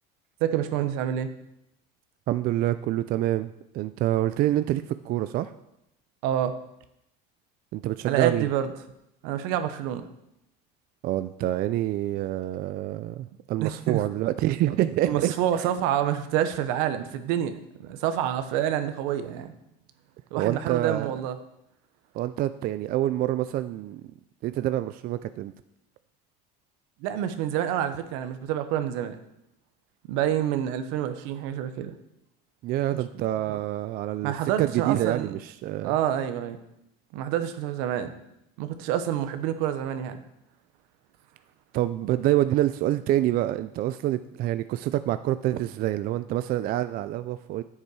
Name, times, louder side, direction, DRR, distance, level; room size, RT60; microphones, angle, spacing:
voice 1, 0.4-1.3 6.2-6.6 8.1-8.7 9.2-10.0 13.6-14.0 15.0-19.5 20.3-21.4 27.0-29.2 30.0-31.9 33.1-33.6 34.2-35.3 35.8-36.6 37.1-38.1 38.6-40.2, right 10 dB, 75° right, 10 dB, 1.0 m, -28 dB
voice 2, 2.3-5.5 7.7-8.5 11.0-15.3 20.4-21.1 22.1-24.0 24.4-25.5 32.6-36.0 41.7-47.6, right 14 dB, 45° right, 12 dB, 0.4 m, -27 dB
9.6 x 7.4 x 4.8 m, 0.83 s
cardioid pair, 125°, 21 cm